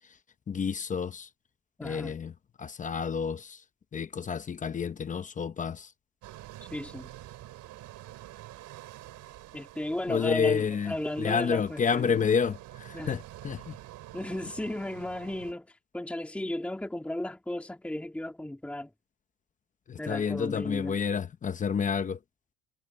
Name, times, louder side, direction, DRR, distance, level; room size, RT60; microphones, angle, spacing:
voice 1, 0.5-1.3 1.8-2.3 2.6-3.6 3.9-5.9 10.1-10.9 11.2-13.7 19.9-22.2, left 6 dB, 20° left, 0.8 m, -29 dB
voice 2, 1.8-2.2 6.6-7.1 9.5-12.2 12.9-13.2 14.1-18.9 20.0-21.0, left 1 dB, 5° left, 2.1 m, -35 dB
sound 1, 6.2-15.5, right 15 dB, 50° right, 3.2 m, -47 dB
cardioid pair, 150°, 38 cm